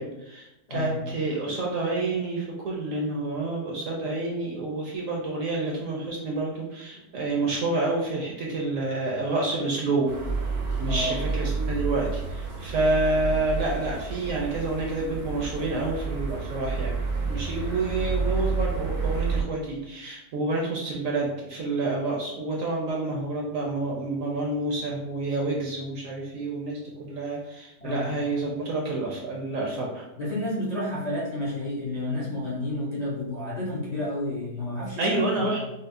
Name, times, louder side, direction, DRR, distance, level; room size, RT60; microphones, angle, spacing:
voice 1, 0.0-10.1 10.8-17.0 17.3-30.0 35.0-35.6, right 2 dB, 65° right, -2 dB, 0.8 m, -28 dB
voice 2, 0.7-1.0 10.9-11.2 27.8-28.1 30.2-35.5, left 1 dB, 45° left, -7 dB, 0.5 m, -30 dB
sound 1, 10.1-19.4, right 4 dB, 90° right, 1.4 m, -30 dB
5.4 x 2.0 x 2.5 m, 0.94 s
omnidirectional pair, 1.8 m